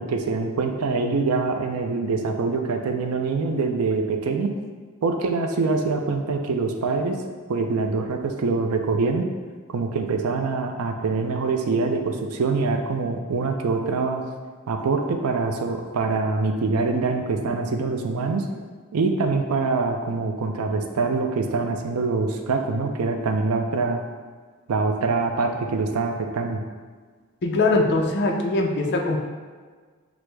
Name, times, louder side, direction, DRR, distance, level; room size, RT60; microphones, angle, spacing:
voice 1, 0.0-4.5 5.0-7.2 7.5-9.3 9.7-14.2 14.7-18.4 18.9-24.0 24.7-26.6, right 4 dB, 90° right, 4 dB, 0.4 m, -24 dB
voice 2, 27.4-29.2, left 2 dB, 50° left, 1 dB, 0.4 m, -21 dB
6.1 x 2.0 x 3.3 m, 1.5 s
head